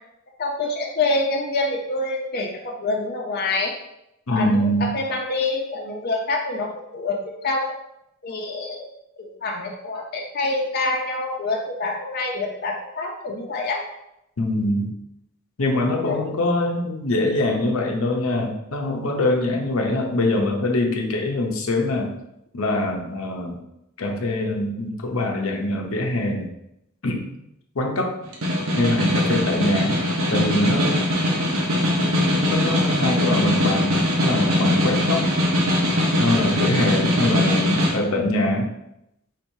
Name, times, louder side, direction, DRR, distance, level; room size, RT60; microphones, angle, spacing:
voice 1, 0.4-3.7 4.3-7.7 8.2-8.9 9.2-13.8 16.0-16.3, left 2 dB, 50° left, 0 dB, 0.6 m, -26 dB
voice 2, 4.3-5.0 14.4-14.9 15.6-22.1 22.5-23.6 24.0-26.5 27.0-27.3 27.7-28.1 28.8-30.0 30.3-31.1 32.0-35.3 36.2-38.7, left 1 dB, 85° left, 1 dB, 0.8 m, -23 dB
Snare drum, 28.2-38.0, left 1 dB, 85° right, 1.1 m, -21 dB
4.6 x 4.1 x 2.7 m, 0.81 s
head